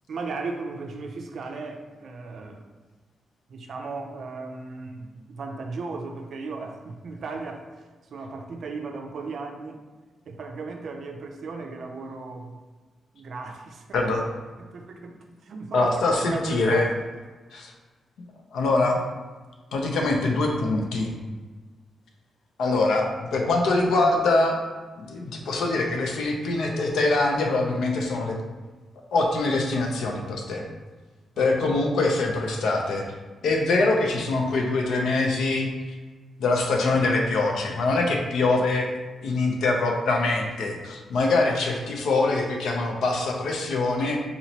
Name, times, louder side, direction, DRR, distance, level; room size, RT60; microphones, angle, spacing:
voice 1, 0.1-2.7 3.5-7.7 8.1-9.8 10.3-12.6 13.1-14.0 14.6-15.9 16.3-16.9 31.3-31.4, right 3 dB, 55° right, 3 dB, 0.4 m, -36 dB
voice 2, 13.9-14.2 15.7-16.9 17.5-17.7 18.5-19.0 19.7-21.1 22.6-24.6 25.0-28.4 29.1-30.6 31.4-33.0 33.4-35.7 36.4-38.9 39.2-44.2, left 2 dB, 85° left, 1 dB, 0.6 m, -23 dB
4.0 x 3.0 x 2.8 m, 1.3 s
wide cardioid pair, 155°, 0 cm